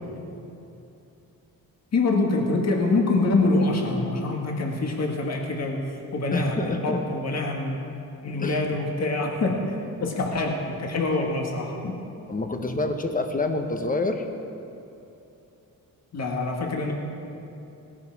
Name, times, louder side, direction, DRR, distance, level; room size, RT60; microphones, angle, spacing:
voice 1, 1.9-7.8 8.2-9.6 10.0-11.9 16.1-16.9, left 2 dB, 45° left, 1 dB, 1.8 m, -25 dB
voice 2, 6.3-7.0 8.4-8.6 12.3-14.3, left 2 dB, 25° left, 5 dB, 1.1 m, -27 dB
18.0 x 11.0 x 4.8 m, 2.8 s
cardioid pair, 110°, 35 cm